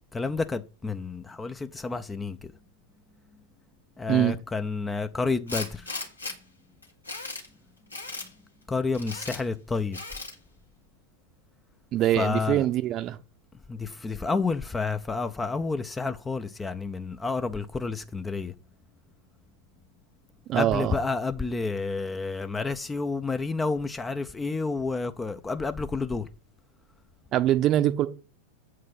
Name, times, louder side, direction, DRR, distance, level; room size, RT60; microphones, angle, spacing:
voice 1, 0.1-2.5 4.0-5.9 8.7-10.0 12.2-12.7 13.7-18.5 20.5-26.3, left 4 dB, 10° left, 0.6 m, -30 dB
Tools, 5.5-6.4 6.8-7.5 7.9-8.3 8.9-9.4 9.9-10.4, left 3 dB, 80° left, 1.8 m, -36 dB
voice 2, 11.9-13.2 20.5-21.0 27.3-28.1, right 13 dB, 35° right, 0.8 m, -23 dB
8.1 x 4.7 x 5.8 m
figure-of-eight pair, 90°, 0 cm